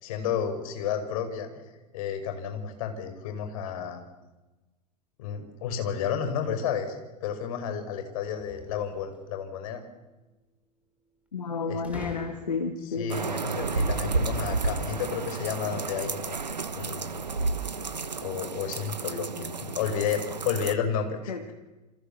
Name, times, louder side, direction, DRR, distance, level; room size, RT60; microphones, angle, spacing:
voice 1, 0.0-1.5 1.9-4.0 5.2-7.0 7.2-9.8 11.7-12.1 13.0-16.4 16.7-17.2 18.2-21.5, left 7 dB, 55° left, 7 dB, 5.8 m, -31 dB
sound 1, 8.4-9.4 11.8-12.9, right 1 dB, 5° right, 5.3 m, -45 dB
voice 2, 11.3-13.2 21.3-21.5, left 5 dB, 75° left, 7 dB, 2.2 m, -31 dB
sound 2, 13.1-20.7, right 4 dB, 80° right, 1.3 m, -31 dB
29.0 x 26.5 x 7.4 m, 1.1 s
figure-of-eight pair, 90°, 21 cm